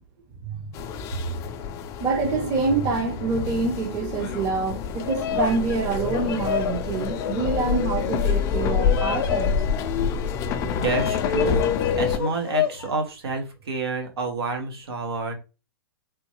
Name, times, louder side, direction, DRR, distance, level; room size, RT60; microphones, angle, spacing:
sound 1, 0.7-12.2, left 7 dB, 25° left, 0.3 m, -27 dB
voice 1, 2.0-9.5, right 4 dB, 30° right, 0.7 m, -26 dB
Bird vocalization bird call bird song, 4.9-12.9, left 10 dB, 70° left, 0.6 m, -31 dB
voice 2, 10.6-11.7 11.9-15.4, right 3 dB, 85° right, 1.2 m, -29 dB
3.7 x 2.2 x 3.0 m
hypercardioid pair, 140°, 13 cm